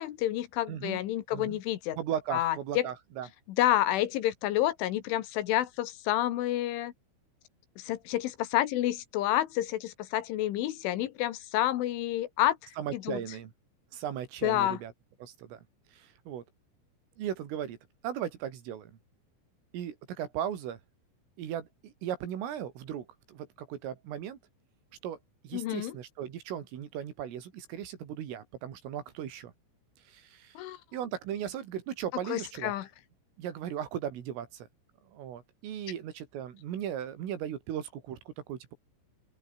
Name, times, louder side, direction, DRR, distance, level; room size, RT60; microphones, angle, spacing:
voice 1, 0.0-2.0 2.3-2.9 3.6-6.9 7.8-12.6 12.9-13.2 14.4-14.8 25.5-25.9 30.6-30.8 32.3-32.9, left 14 dB, 75° left, 3.9 m, -29 dB
voice 2, 0.7-1.0 1.3-1.6 1.9-3.3 12.8-13.5 13.9-14.9 15.2-15.6 15.9-16.4 17.2-17.8 18.0-19.0 19.7-20.8 21.4-24.4 25.0-25.2 25.4-29.5 30.1-30.6 30.9-32.7 33.4-34.7 35.1-38.7, right 10 dB, 80° right, 5.5 m, -37 dB
open air
omnidirectional pair, 5.7 m